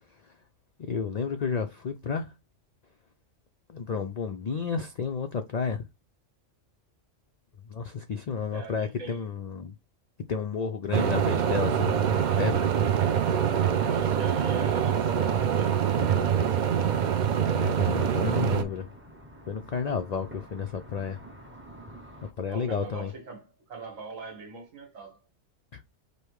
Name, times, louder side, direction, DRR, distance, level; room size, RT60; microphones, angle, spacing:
voice 1, 0.8-2.3 3.7-5.9 7.7-9.8 10.3-13.7 16.8-16.9 17.5-18.9 19.5-21.2 22.2-23.1 25.7-25.8, left 5 dB, 80° left, 0.3 m, -32 dB
voice 2, 8.5-9.2 10.9-11.1 13.8-16.0 22.5-25.2, right 4 dB, 85° right, 1.8 m, -42 dB
sound 1, 10.9-18.6, right 8 dB, 65° right, 0.4 m, -25 dB
sound 2, 13.6-22.3, equal, 15° right, 0.5 m, -45 dB
5.3 x 2.1 x 4.6 m
omnidirectional pair, 1.3 m